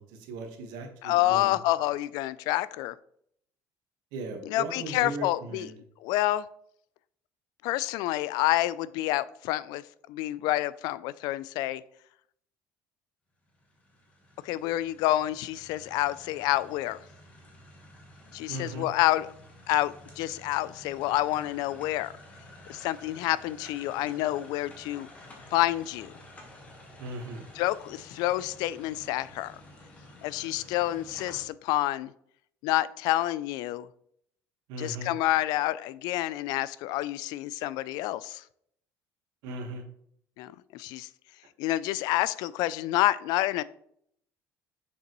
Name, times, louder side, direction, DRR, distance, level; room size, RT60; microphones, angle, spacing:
voice 1, 0.0-1.6 4.1-5.8 18.5-18.9 27.0-27.4 34.7-35.1 39.4-39.8, right 2 dB, 90° right, 1.4 m, -38 dB
voice 2, 1.0-2.9 4.5-5.7 6.0-6.5 7.6-9.8 10.1-11.8 14.4-17.0 18.3-19.3 19.7-22.1 22.7-25.1 25.5-26.1 27.6-29.5 30.2-32.1 32.6-33.9 34.8-38.4 40.4-41.1 41.6-43.6, left 15 dB, 80° left, 0.3 m, -28 dB
sound 1, 13.5-31.4, left 1 dB, 20° left, 1.3 m, -51 dB
6.6 x 5.2 x 3.0 m
cardioid pair, 155°, 7 cm